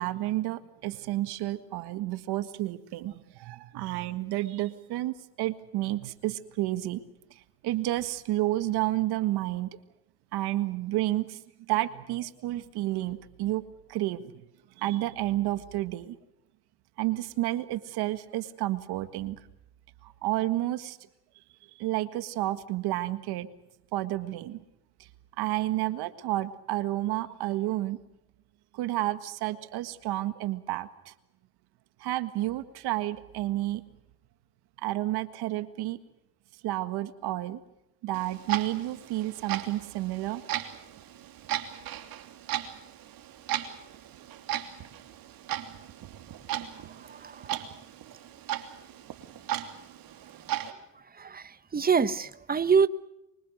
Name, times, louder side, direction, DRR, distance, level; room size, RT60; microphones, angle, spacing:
voice 1, 0.0-7.0 7.6-9.7 10.3-11.4 11.7-13.6 13.9-14.4 14.8-16.2 17.0-19.4 20.0-21.0 21.8-23.5 23.9-24.6 25.4-28.0 28.7-31.1 32.0-33.8 34.8-36.0 36.6-37.6 38.0-40.4, right 16 dB, 75° right, 1.8 m, -30 dB
Clock, 38.1-50.7, right 12 dB, 60° right, 3.1 m, -37 dB
voice 2, 51.7-52.9, right 6 dB, 25° right, 1.3 m, -24 dB
25.5 x 24.5 x 6.5 m
cardioid pair, 100°, 39 cm